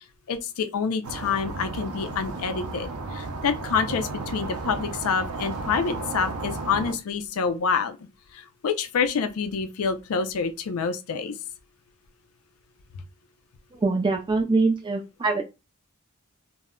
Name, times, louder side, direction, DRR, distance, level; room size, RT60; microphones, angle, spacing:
voice 1, 0.3-8.0 8.3-11.3, left 5 dB, 75° left, 0.4 m, -27 dB
sound 1, 1.0-6.9, right 3 dB, 80° right, 0.5 m, -34 dB
voice 2, 13.8-15.4, right 3 dB, 20° right, 0.3 m, -23 dB
2.1 x 2.0 x 3.5 m
head